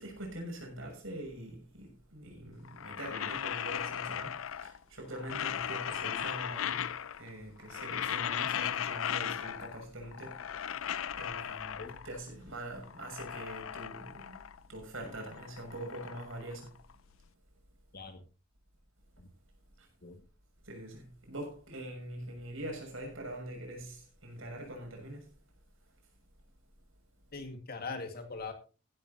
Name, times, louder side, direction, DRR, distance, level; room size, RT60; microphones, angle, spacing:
voice 1, 0.0-16.8 19.8-19.9 20.6-25.4, right 1 dB, 80° right, 6.7 m, -44 dB
sound 1, 2.7-4.8 5.1-7.3 7.6-9.8 10.1-12.2 12.7-14.7 14.9-17.1, left 9 dB, 85° left, 0.5 m, -37 dB
voice 2, 27.3-28.5, left 4 dB, 50° left, 2.0 m, -41 dB
15.5 x 12.0 x 2.9 m
head